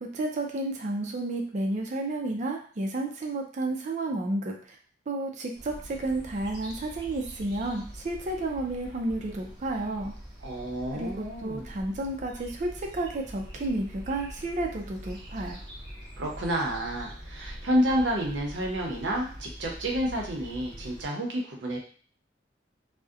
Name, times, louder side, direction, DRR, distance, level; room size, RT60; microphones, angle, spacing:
voice 1, 0.0-4.8 5.1-10.1 10.9-15.6, right 2 dB, 40° right, 2 dB, 0.4 m, -31 dB
sound 1, 5.6-21.1, equal, 25° right, 0.9 m, -44 dB
voice 2, 10.4-11.7 16.2-21.8, equal, 80° right, 0 dB, 0.7 m, -29 dB
2.6 x 2.0 x 2.4 m, 0.43 s
head